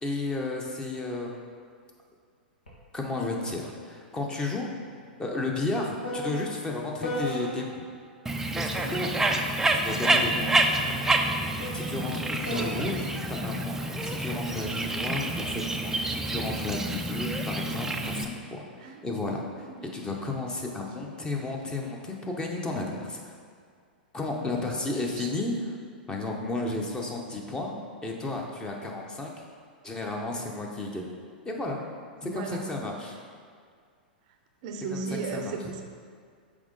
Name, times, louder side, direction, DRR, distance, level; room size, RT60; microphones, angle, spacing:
voice 1, 0.0-1.4 2.9-4.7 5.2-7.9 8.5-9.1 9.7-10.5 11.7-19.7 19.9-23.3 24.1-25.7 26.1-27.8 28.0-29.3 29.8-31.1 31.4-31.8 32.2-33.2 34.9-35.0 35.3-35.5, left 2 dB, 15° left, 0 dB, 0.8 m, -33 dB
sound 1, 2.7-2.8 3.1-7.9 8.8-14.4 15.2-15.6, left 1 dB, 80° left, 1.4 m, -39 dB
Bird, 8.3-18.3, right 2 dB, 10° right, 0.4 m, -28 dB
voice 2, 12.5-13.1 18.8-19.9 25.1-25.3 32.2-32.9 34.6-35.8, right 4 dB, 50° right, 4 dB, 0.6 m, -37 dB
6.0 x 4.3 x 4.0 m, 2.1 s
figure-of-eight pair, 100°, 5 cm